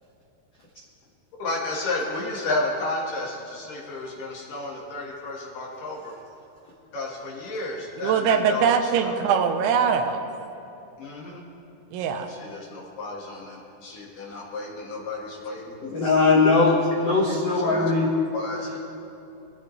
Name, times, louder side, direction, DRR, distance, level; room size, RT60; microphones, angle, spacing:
voice 1, 1.4-6.1 6.9-9.2 11.0-11.4 12.2-15.8 17.2-17.9 18.3-18.8, left 2 dB, 60° left, -2 dB, 2.8 m, -32 dB
voice 2, 8.0-10.3 11.9-12.3, right 7 dB, 85° right, 6 dB, 3.3 m, -22 dB
voice 3, 15.8-18.1, left 3 dB, 75° left, -3 dB, 1.4 m, -20 dB
21.5 x 14.5 x 3.2 m, 2.9 s
omnidirectional pair, 5.3 m